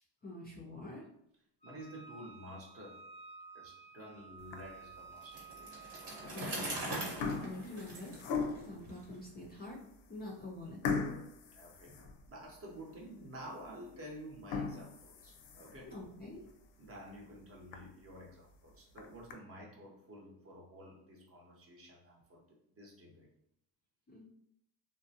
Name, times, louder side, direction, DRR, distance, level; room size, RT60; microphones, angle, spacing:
voice 1, 0.2-1.0 6.3-9.8 10.1-10.8 15.8-16.4 24.1-24.2, left 2 dB, 25° left, -3 dB, 0.4 m, -46 dB
voice 2, 1.6-3.0 3.5-5.7 11.6-12.0 12.3-16.1 16.8-23.3, equal, 35° right, -1 dB, 0.7 m, -51 dB
Wind instrument woodwind instrument, 1.6-6.3, right 4 dB, 90° right, 1.0 m, -53 dB
sound 1, 4.4-4.9 5.5-5.6 6.5-6.7 7.0-8.8 9.5-9.6 9.9-10.0 10.8-12.6 13.0-13.1 13.6-13.7 14.3-15.9 16.4-16.5 16.9-17.0 17.3-17.4 17.7-17.8 18.7-19.3, left 5 dB, 80° left, 0.5 m, -39 dB
Bicycle, 5.2-9.0, right 1 dB, 65° right, 1.0 m, -42 dB
2.4 x 2.0 x 2.7 m, 0.73 s
cardioid pair, 110°, 42 cm